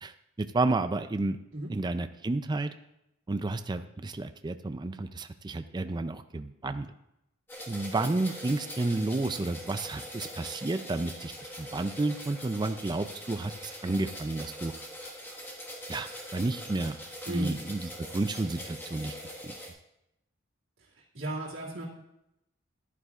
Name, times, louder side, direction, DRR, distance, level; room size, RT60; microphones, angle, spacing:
voice 1, 0.0-1.4 1.7-2.7 3.3-6.9 7.7-11.3 11.6-14.7 15.9-17.0 17.3-19.2 19.4-19.5, right 2 dB, 20° right, 9 dB, 0.4 m, -31 dB
sound 1, 7.5-19.7, equal, 10° left, 1.5 m, -43 dB
voice 2, 21.1-21.8, right 1 dB, 70° right, -8 dB, 2.3 m, -34 dB
14.0 x 11.0 x 2.4 m, 0.85 s
head